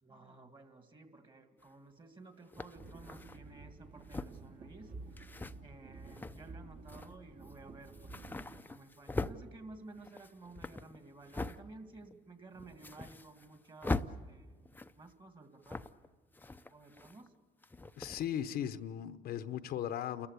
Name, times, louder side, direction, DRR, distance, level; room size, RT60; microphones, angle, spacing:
voice 1, 0.0-5.3 5.6-16.2 16.7-17.3, right 3 dB, 30° right, 7 dB, 2.3 m, -54 dB
sound 1, 1.6-1.7 2.5-3.4 4.0-4.5 5.2-5.5 6.0-6.5 6.9-7.1 7.5-7.6 7.9-9.4 9.9-11.6 12.0-12.1 12.5-13.6 13.8-14.1 14.7-15.1 15.6-16.1 16.3-17.3 17.6-18.3, left 3 dB, 10° left, 0.6 m, -41 dB
sound 2, 2.7-8.6, right 3 dB, 50° right, 2.3 m, -51 dB
voice 2, 18.0-20.3, left 10 dB, 65° left, 11 dB, 0.9 m, -37 dB
29.5 x 14.5 x 8.4 m, 1.4 s
cardioid pair, 110°, 17 cm